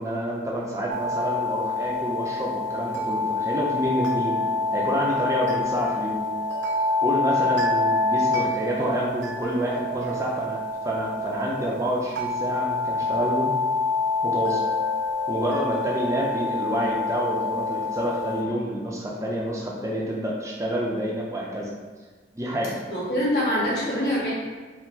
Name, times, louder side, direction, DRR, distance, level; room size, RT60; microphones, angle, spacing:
voice 1, 0.0-4.4 4.7-6.2 6.8-10.6 10.8-13.5 14.2-14.6 15.3-21.7 22.3-22.8, equal, 15° right, -3 dB, 0.5 m, -28 dB
sound 1, 0.9-18.4, left 3 dB, 85° right, 0.4 m, -27 dB
voice 2, 22.9-24.3, equal, 60° left, -9 dB, 1.5 m, -24 dB
4.4 x 2.0 x 4.0 m, 1.4 s
head